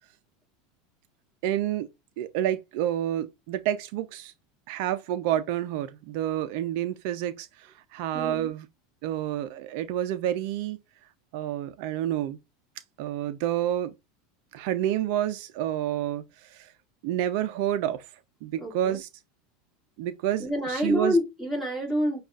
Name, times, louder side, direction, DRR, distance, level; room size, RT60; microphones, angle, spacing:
voice 1, 1.4-1.9 2.2-4.3 4.7-8.6 9.0-10.8 11.3-12.4 13.0-13.9 14.5-16.7 17.0-18.1 18.4-19.1 20.0-21.2, right 12 dB, 60° right, 0.5 m, -29 dB
voice 2, 8.1-8.5 18.6-19.0 20.4-22.2, equal, 5° left, 2.1 m, -27 dB
6.5 x 2.3 x 2.4 m
supercardioid pair, 140°, 0 cm